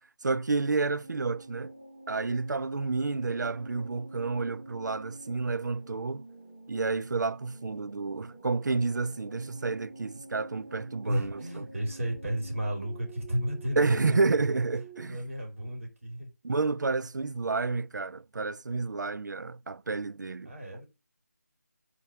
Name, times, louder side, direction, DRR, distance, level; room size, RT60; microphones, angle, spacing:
voice 1, 0.2-1.7 2.1-6.2 6.7-11.7 13.8-15.2 16.4-20.5, right 3 dB, 90° right, 0.4 m, -30 dB
sound 1, 1.0-15.1, right 2 dB, 25° right, 2.6 m, -49 dB
voice 2, 11.0-14.4 15.0-16.3 20.4-20.8, equal, 50° right, 2.5 m, -33 dB
5.8 x 3.9 x 5.7 m
figure-of-eight pair, 175°, 10 cm